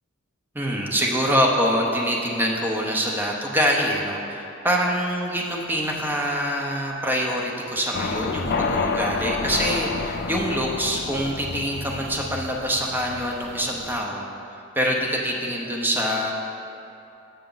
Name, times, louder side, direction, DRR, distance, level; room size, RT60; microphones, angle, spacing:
voice 1, 0.5-14.3 14.7-16.3, equal, 10° right, -2 dB, 0.6 m, -25 dB
sound 1, 7.9-14.0, left 4 dB, 50° left, 0.4 m, -29 dB
6.9 x 6.4 x 3.9 m, 2.7 s
head